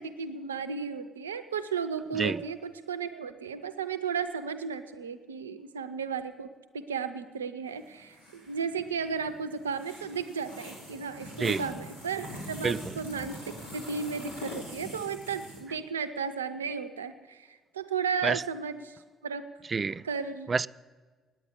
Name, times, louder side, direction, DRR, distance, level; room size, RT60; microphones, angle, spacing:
voice 1, 0.0-6.5 6.7-19.5 20.0-20.5, right 6 dB, 85° right, 0.6 m, -34 dB
sound 1, 7.7-15.6, left 1 dB, 85° left, 2.7 m, -43 dB
voice 2, 19.7-20.0 20.5-20.7, right 4 dB, 35° right, 0.3 m, -27 dB
9.7 x 9.2 x 9.6 m
figure-of-eight pair, 45°, 0 cm